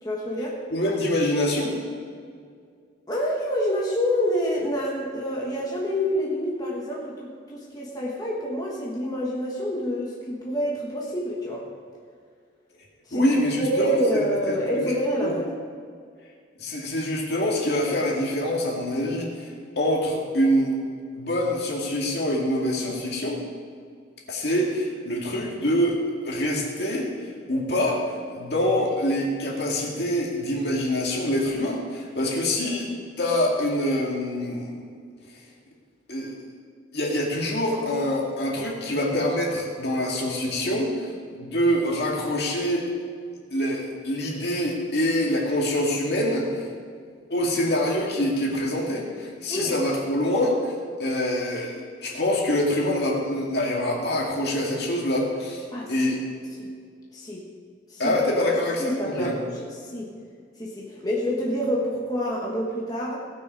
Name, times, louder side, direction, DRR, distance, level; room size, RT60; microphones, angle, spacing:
voice 1, 0.0-0.6 3.1-11.7 13.1-13.3 13.6-15.4 49.5-49.7 55.7-56.1 56.6-56.7 57.1-57.4 57.9-58.5 58.8-60.1 60.6-63.2, equal, 20° left, -4 dB, 1.4 m, -27 dB
voice 2, 0.7-1.8 13.1-14.9 15.2-15.4 16.6-19.5 19.8-20.8 21.1-23.4 24.3-32.9 33.2-34.7 36.1-36.3 36.9-42.9 43.5-46.7 47.3-50.7 51.0-51.7 52.0-55.6 55.9-56.2 58.0-59.3, left 1 dB, 60° left, -2 dB, 2.3 m, -25 dB
17.5 x 6.3 x 4.9 m, 2.1 s
head